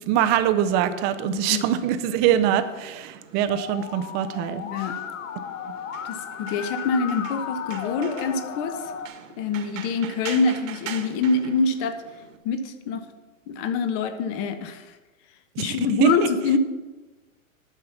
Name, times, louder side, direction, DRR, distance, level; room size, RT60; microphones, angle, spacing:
voice 1, 0.1-4.6 15.6-16.3, right 11 dB, 25° right, 10 dB, 0.6 m, -23 dB
voice 2, 1.2-1.7 4.6-5.0 6.0-8.8 9.4-12.0 12.4-13.0 13.5-14.9 15.6-16.6, left 4 dB, 35° left, 9 dB, 1.1 m, -25 dB
sound 1, 2.3-12.4, right 8 dB, 70° right, 1.5 m, -43 dB
Musical instrument, 3.5-9.1, left 8 dB, 65° left, 1.0 m, -35 dB
11.0 x 5.6 x 7.1 m, 1.2 s
hypercardioid pair, 135°, 41 cm